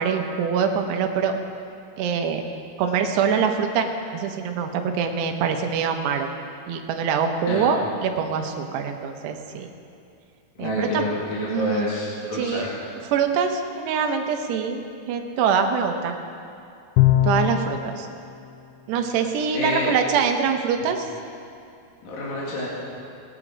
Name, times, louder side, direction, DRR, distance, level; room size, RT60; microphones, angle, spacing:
voice 1, 0.0-1.4 2.0-2.5 2.8-6.3 6.7-9.7 10.6-11.0 11.5-11.9 12.4-12.7 13.1-14.8 15.1-16.2 17.2-18.1 18.9-21.1, right 6 dB, 85° right, 5 dB, 3.1 m, -24 dB
voice 2, 10.6-12.7 17.4-17.6 19.5-19.9 22.0-22.7, left 1 dB, 60° left, -6 dB, 3.6 m, -28 dB
Bowed string instrument, 17.0-17.9, left 12 dB, 80° left, 2.5 m, -19 dB
20.5 x 9.1 x 4.9 m, 2.5 s
omnidirectional pair, 4.7 m